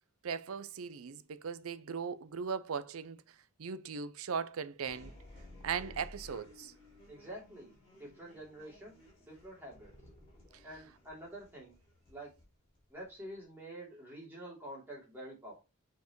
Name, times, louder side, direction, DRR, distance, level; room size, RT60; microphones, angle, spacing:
voice 1, 0.2-3.2 3.6-5.1 5.6-6.7, right 6 dB, 75° right, 0.5 m, -38 dB
sound 1, 4.8-13.4, left 1 dB, 25° left, 2.7 m, -56 dB
voice 2, 7.1-7.7 8.0-9.0 9.3-9.9 10.6-11.8 12.1-12.3 12.9-15.6, right 1 dB, 10° right, 3.1 m, -47 dB
7.1 x 4.5 x 3.1 m
head